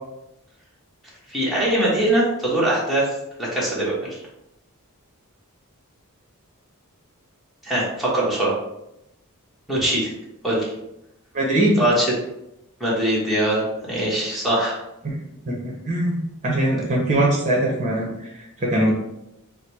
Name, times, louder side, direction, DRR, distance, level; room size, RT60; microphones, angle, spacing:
voice 1, 1.3-3.1 3.4-4.2 7.6-8.5 9.7-10.1 10.4-10.6 11.8-12.1 12.8-14.8, right 1 dB, ahead, -7 dB, 1.0 m, -22 dB
voice 2, 11.3-11.8 15.0-15.1 15.5-18.9, right 1 dB, 30° right, -2 dB, 0.9 m, -22 dB
4.1 x 2.1 x 4.5 m, 0.86 s
head